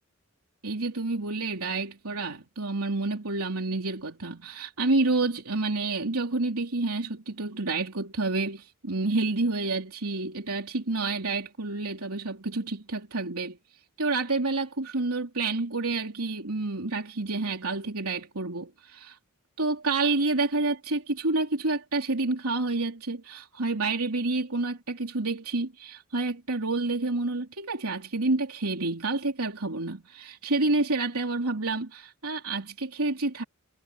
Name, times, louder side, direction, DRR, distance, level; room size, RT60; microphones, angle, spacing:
voice 1, 0.6-13.6 14.0-19.2 19.6-33.4, right 3 dB, 80° right, 3.2 m, -29 dB
head